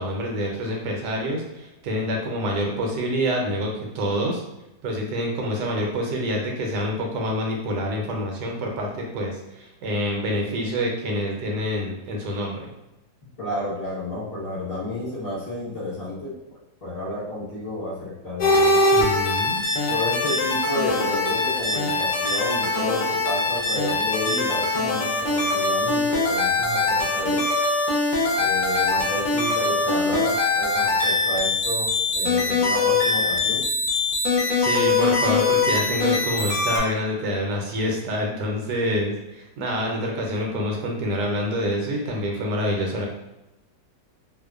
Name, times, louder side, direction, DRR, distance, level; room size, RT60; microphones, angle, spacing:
voice 1, 0.0-4.4 4.8-12.7 18.9-19.6 34.6-43.1, equal, 80° right, 0 dB, 1.2 m, -27 dB
voice 2, 13.4-16.3 16.8-18.8 19.9-27.4 28.4-33.6, left 1 dB, 40° left, -10 dB, 1.2 m, -31 dB
sound 1, 18.4-36.8, left 3 dB, 65° left, 0.8 m, -22 dB
2.8 x 2.0 x 2.3 m, 0.95 s
omnidirectional pair, 1.8 m